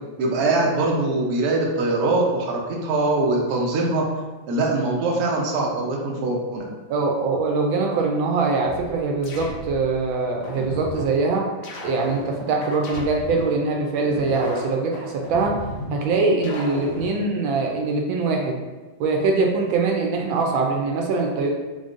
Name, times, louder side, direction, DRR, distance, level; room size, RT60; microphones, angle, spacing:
voice 1, 0.2-4.0 4.5-6.6, right 2 dB, 60° right, -2 dB, 1.1 m, -22 dB
voice 2, 6.9-11.5 11.8-15.6 15.9-18.6 19.0-21.5, right 3 dB, 80° right, 1 dB, 1.3 m, -23 dB
sound 1, 8.6-9.9 10.4-11.1 11.6-13.6 14.0-15.9 16.4-17.1, left 1 dB, 75° left, 1.5 m, -34 dB
3.9 x 3.7 x 2.5 m, 1.3 s
omnidirectional pair, 2.1 m